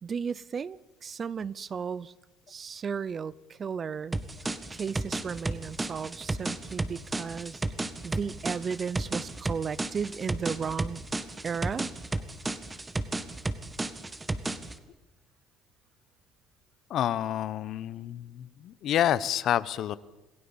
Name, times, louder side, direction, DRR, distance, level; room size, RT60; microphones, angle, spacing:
voice 1, 0.0-2.1 2.5-4.2 4.7-7.6 8.0-11.0 11.4-11.9, right 6 dB, 35° right, 20 dB, 0.6 m, -34 dB
sound 1, 4.1-14.8, right 2 dB, 15° right, 1.6 m, -33 dB
voice 2, 16.9-20.0, left 11 dB, 60° left, 17 dB, 0.9 m, -28 dB
27.5 x 16.0 x 7.2 m, 1.1 s
supercardioid pair, 100°, 0 cm